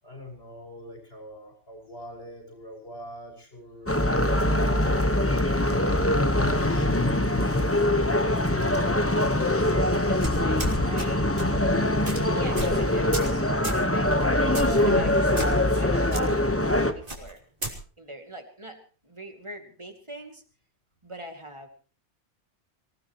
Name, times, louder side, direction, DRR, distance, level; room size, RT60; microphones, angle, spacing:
voice 1, 0.0-4.9 5.5-8.8 14.8-15.2, equal, 55° left, 1 dB, 5.9 m, -42 dB
sound 1, 3.9-16.9, left 1 dB, 10° left, 1.1 m, -23 dB
voice 2, 4.8-5.2 10.1-11.3 12.1-14.2 14.6-16.3 16.9-17.4 18.0-18.8 19.0-20.4 21.0-21.7, right 1 dB, 25° right, 4 dB, 2.5 m, -41 dB
sound 2, 10.2-11.1 11.4-11.6 12.0-12.2 12.6-12.8 13.1-13.3 13.6-13.8 14.5-14.8 15.4-15.8 16.1-16.2 17.1-17.7, right 1 dB, 45° right, 3.5 m, -33 dB
25.5 x 17.0 x 3.1 m, 0.40 s
omnidirectional pair, 1.2 m